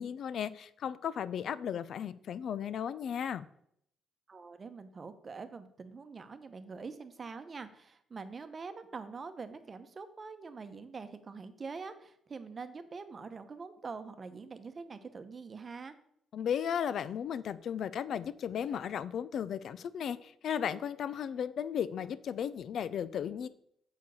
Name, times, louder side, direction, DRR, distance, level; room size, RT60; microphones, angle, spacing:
voice 1, 0.0-3.5 16.3-23.5, left 8 dB, 65° left, 16 dB, 0.4 m, -35 dB
voice 2, 4.3-15.9, right 4 dB, 35° right, 9 dB, 0.9 m, -44 dB
7.2 x 4.6 x 6.3 m, 0.71 s
cardioid pair, 90°, 0 cm